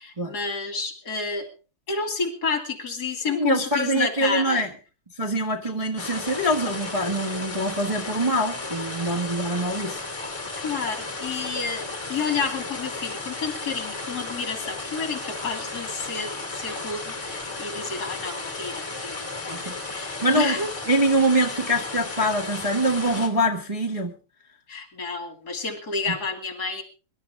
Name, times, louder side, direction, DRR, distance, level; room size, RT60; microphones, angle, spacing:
voice 1, 0.0-1.4 1.9-4.6 9.1-9.2 10.6-20.7 24.7-26.8, left 4 dB, 45° left, 5 dB, 3.0 m, -30 dB
voice 2, 3.3-4.7 5.2-10.0 19.4-19.8 20.2-20.6 20.8-24.1 26.1-26.2, right 1 dB, 20° right, -1 dB, 1.5 m, -24 dB
sound 1, 6.0-23.3, left 3 dB, 15° left, 3.0 m, -34 dB
24.5 x 12.0 x 3.6 m, 0.36 s
omnidirectional pair, 2.4 m